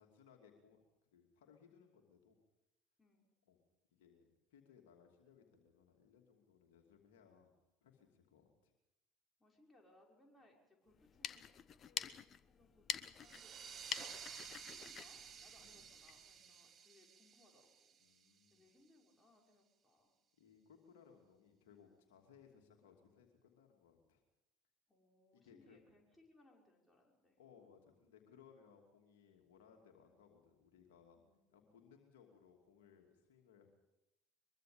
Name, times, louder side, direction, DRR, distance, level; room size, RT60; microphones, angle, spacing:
voice 1, 0.0-2.4 3.5-3.6 3.9-7.5 7.8-8.7 15.6-15.9 16.4-16.6 18.0-18.7 20.4-24.2 25.3-25.8 27.4-31.2 31.5-33.7, left 7 dB, 65° left, 2 dB, 2.8 m, -65 dB
voice 2, 9.4-18.0 18.5-20.1 24.9-27.4 31.2-31.9, left 2 dB, 10° left, -1 dB, 5.9 m, -70 dB
sound 1, 10.9-16.2, left 8 dB, 35° left, 0.9 m, -47 dB
sound 2, 13.2-18.5, right 7 dB, 35° right, 1.9 m, -53 dB
23.0 x 23.0 x 5.2 m, 0.89 s
figure-of-eight pair, 65°, 0 cm